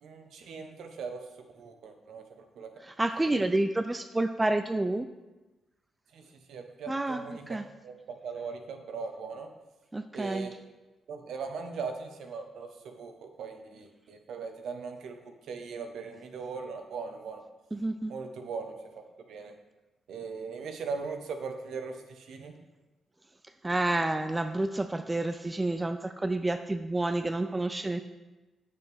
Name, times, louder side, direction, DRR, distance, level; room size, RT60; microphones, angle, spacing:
voice 1, 0.0-2.7 3.3-3.4 6.1-7.6 7.8-9.5 10.1-10.5 11.1-17.4 18.1-19.6 20.1-22.6, right 5 dB, 70° right, 6 dB, 1.0 m, -40 dB
voice 2, 2.8-5.1 6.9-7.6 9.9-10.5 17.7-18.1 23.6-28.0, right 2 dB, 20° right, 9 dB, 0.4 m, -29 dB
8.2 x 6.9 x 3.5 m, 1.1 s
hypercardioid pair, 45°, 0 cm